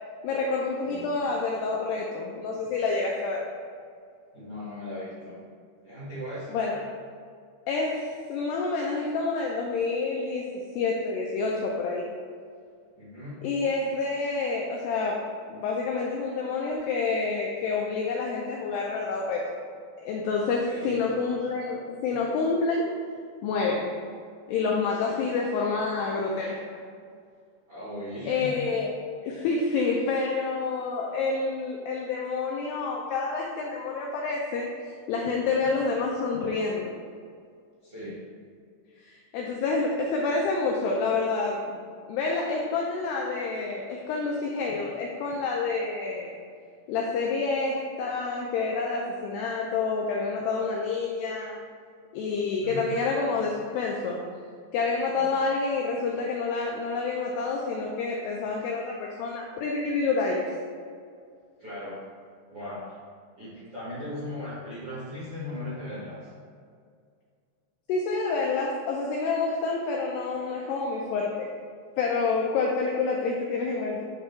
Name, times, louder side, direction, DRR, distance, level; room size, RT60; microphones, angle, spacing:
voice 1, 0.2-3.5 6.5-6.8 7.7-10.5 10.8-12.1 13.4-19.6 20.1-22.9 23.4-23.9 24.5-26.7 28.3-28.9 29.2-37.0 39.0-41.8 42.1-46.3 46.9-51.6 52.1-54.2 54.7-60.5 67.9-71.5 72.0-74.1, left 4 dB, 85° left, -1 dB, 2.4 m, -28 dB
voice 2, 0.8-1.1 4.3-5.4 5.8-6.6 13.0-13.4 20.4-21.0 25.0-25.2 27.7-28.5 37.8-38.2 44.6-44.7 52.6-52.8 55.1-55.2 61.6-62.0 62.5-63.0 63.4-66.3, left 1 dB, 55° right, -10 dB, 1.6 m, -38 dB
10.0 x 3.4 x 4.4 m, 2.2 s
omnidirectional pair, 5.5 m